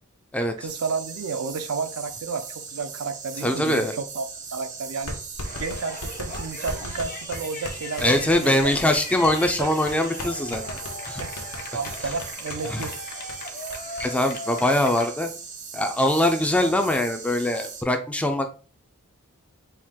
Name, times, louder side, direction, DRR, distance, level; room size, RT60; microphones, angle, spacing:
voice 1, 0.6-5.2 5.6-8.9 11.2-11.3 11.7-12.9, right 4 dB, 80° right, 9 dB, 0.5 m, -32 dB
sound 1, 0.7-17.8, right 6 dB, 35° right, 0.6 m, -39 dB
voice 2, 3.4-3.9 8.0-10.6 11.1-11.2 12.7-12.8 14.0-15.3 15.7-18.5, left 1 dB, 5° left, 5 dB, 0.4 m, -22 dB
sound 2, 4.1-4.2 5.1-13.0 13.3-13.4 13.7-14.1, left 1 dB, 75° left, 1.0 m, -36 dB
Yell, 5.4-15.1, left 2 dB, 40° left, 0.7 m, -39 dB
4.4 x 2.4 x 3.6 m, 0.39 s
head